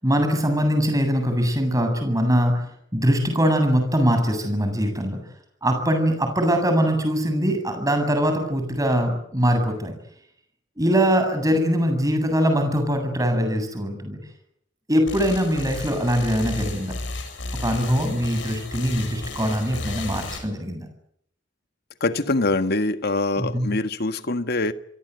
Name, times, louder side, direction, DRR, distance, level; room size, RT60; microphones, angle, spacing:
voice 1, 0.0-2.7 2.9-5.2 5.6-9.9 10.8-14.2 14.9-16.9 17.6-20.9 23.4-23.7, equal, 20° right, 7.9 m, -22 dB
sound 1, 15.1-20.4, left 2 dB, 75° left, 7.8 m, -33 dB
voice 2, 22.0-24.7, left 2 dB, 60° left, 1.6 m, -24 dB
27.5 x 23.0 x 8.1 m
head